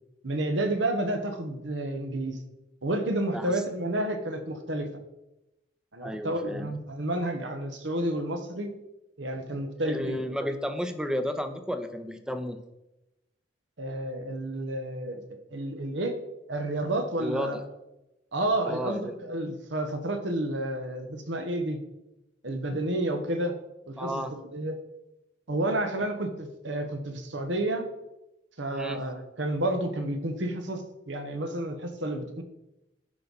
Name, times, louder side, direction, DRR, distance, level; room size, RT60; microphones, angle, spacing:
voice 1, 0.2-2.4 2.8-4.9 5.9-8.7 9.2-10.2 13.8-16.1 16.5-17.6 18.3-21.8 22.4-23.5 23.9-24.8 25.5-27.8 28.6-32.4, right 1 dB, 70° right, 6 dB, 1.2 m, -30 dB
voice 2, 6.0-6.7 9.8-12.6 17.2-17.6 18.6-19.2 24.0-24.3 28.7-29.0, equal, 5° right, 8 dB, 0.6 m, -32 dB
11.0 x 5.4 x 4.0 m, 0.93 s
head